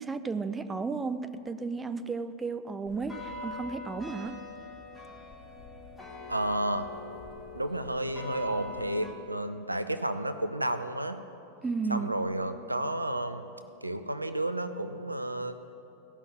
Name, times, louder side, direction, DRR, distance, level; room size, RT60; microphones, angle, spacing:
voice 1, 0.0-4.4 11.6-12.1, right 4 dB, 15° right, 11 dB, 0.5 m, -33 dB
sound 1, 2.9-9.1, left 2 dB, 10° left, 1.8 m, -43 dB
voice 2, 6.3-6.9 7.5-11.2 11.9-13.4 13.8-15.6, right 1 dB, 85° right, 10 dB, 0.5 m, -31 dB
15.5 x 5.9 x 7.4 m, 2.9 s
figure-of-eight pair, 90°, 0 cm